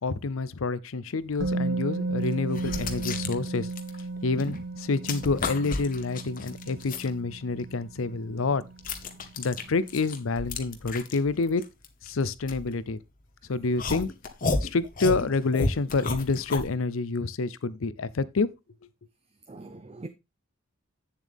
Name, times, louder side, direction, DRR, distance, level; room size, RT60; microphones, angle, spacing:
voice 1, 0.0-3.7 4.2-8.6 9.4-11.6 12.0-13.0 13.5-14.1 14.6-18.5, left 3 dB, 90° left, 0.6 m, -28 dB
Musical instrument, 1.4-9.3 9.6-9.7, right 3 dB, 75° right, 2.3 m, -35 dB
sound 1, 1.5-1.6 2.3-4.6 4.8-7.1 7.6-13.2 13.8-16.7, left 3 dB, 45° left, 1.1 m, -33 dB
voice 2, 19.5-20.1, right 2 dB, 30° right, 0.6 m, -41 dB
8.3 x 7.1 x 3.5 m
head